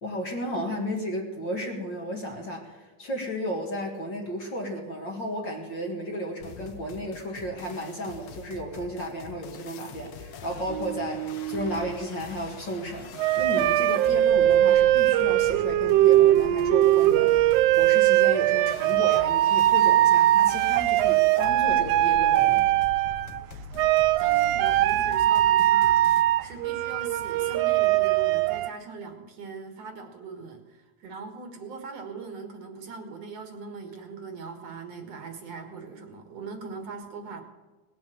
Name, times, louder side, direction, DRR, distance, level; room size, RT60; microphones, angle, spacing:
voice 1, 0.0-22.7, equal, 40° left, 0 dB, 2.2 m, -33 dB
sound 1, 6.4-26.2, left 6 dB, 70° left, 2.1 m, -44 dB
sound 2, 10.7-11.9 13.2-23.4 23.7-28.7, right 14 dB, 90° right, 1.4 m, -21 dB
voice 2, 24.2-37.4, right 4 dB, 55° right, 5 dB, 2.5 m, -40 dB
19.0 x 7.8 x 7.8 m, 1.3 s
omnidirectional pair, 3.5 m